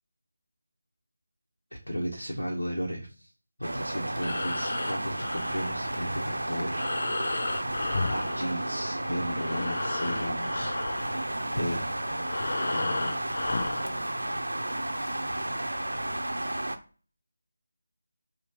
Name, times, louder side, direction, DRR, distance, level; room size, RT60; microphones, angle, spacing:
voice 1, 1.9-3.3 3.6-6.9 8.1-10.7 11.5-11.8 12.7-13.2, equal, 90° left, -2 dB, 1.0 m, -34 dB
sound 1, 3.6-16.8, right 1 dB, 90° right, 0.6 m, -32 dB
Breathing, 4.0-9.0 9.3-14.0, left 3 dB, 55° left, 0.4 m, -34 dB
4.8 x 2.9 x 2.9 m, 0.38 s
figure-of-eight pair, 165°, 0 cm